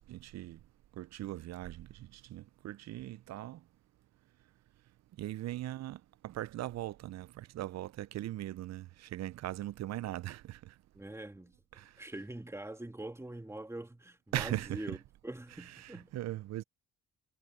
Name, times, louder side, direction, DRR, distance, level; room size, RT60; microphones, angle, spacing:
voice 1, 0.1-0.6 1.0-1.9 2.3-3.6 5.2-6.0 6.2-8.9 9.1-10.6 11.8-11.9 14.3-15.0 15.6-16.6, right 14 dB, 60° right, 0.5 m, -39 dB
voice 2, 10.9-15.0 15.2-16.1, right 1 dB, 10° right, 2.3 m, -44 dB
cardioid pair, 90°, 30 cm